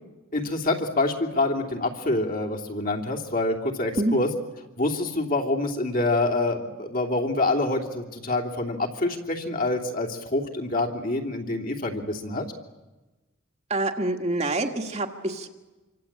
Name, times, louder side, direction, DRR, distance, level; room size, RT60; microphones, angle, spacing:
voice 1, 0.3-4.3 4.8-12.4, left 2 dB, 45° left, 1 dB, 3.0 m, -26 dB
voice 2, 13.7-15.5, right 2 dB, 30° right, 4 dB, 1.8 m, -26 dB
27.0 x 25.0 x 8.8 m, 1.2 s
head